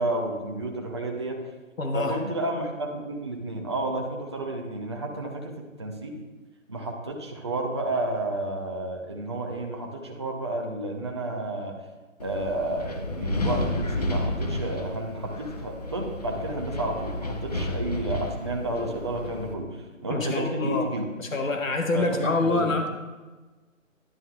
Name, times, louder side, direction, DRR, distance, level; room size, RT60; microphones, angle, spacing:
voice 1, 0.0-1.4 1.9-6.2 6.7-11.7 12.2-19.7 20.0-21.1 21.9-22.6, right 1 dB, 20° right, 0 dB, 0.6 m, -31 dB
voice 2, 1.8-2.2 20.1-20.9 21.2-22.9, left 2 dB, 75° left, 3 dB, 1.3 m, -26 dB
Wind, 12.2-19.5, left 1 dB, 30° left, 0.6 m, -31 dB
10.5 x 10.5 x 2.3 m, 1.3 s
figure-of-eight pair, 155°, 40 cm